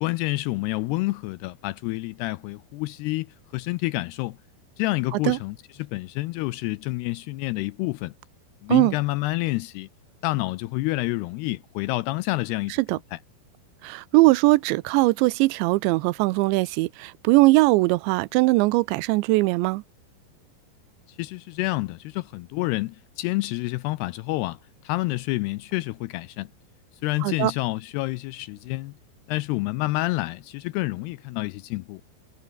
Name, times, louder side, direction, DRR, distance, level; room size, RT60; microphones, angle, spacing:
voice 1, 0.0-4.4 4.8-8.1 8.6-9.9 10.2-13.2 21.1-26.5 27.0-28.9 29.3-32.0, left 20 dB, 85° left, 2.4 m, -28 dB
voice 2, 13.8-19.8 27.2-27.5, right 22 dB, 85° right, 2.9 m, -20 dB
omnidirectional pair, 5.2 m